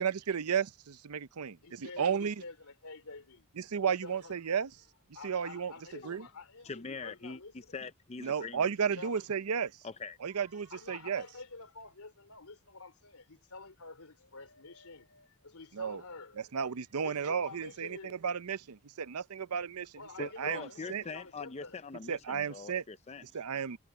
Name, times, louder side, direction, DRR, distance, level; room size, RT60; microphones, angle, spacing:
voice 1, 0.0-2.3 3.6-4.7 5.2-5.7 6.0-6.2 8.2-9.7 10.2-11.2 15.8-16.0 16.5-19.9 20.2-21.0 22.1-22.8 23.2-23.8, right 7 dB, 85° right, 0.6 m, -33 dB
voice 2, 1.6-3.5 3.8-4.4 5.1-7.8 8.2-9.3 10.4-16.4 17.0-18.2 19.9-21.8, left 3 dB, 80° left, 3.3 m, -49 dB
voice 3, 6.6-7.4 7.7-8.6 8.9-9.0 9.8-10.2 20.2-23.2, left 4 dB, 30° left, 0.5 m, -42 dB
head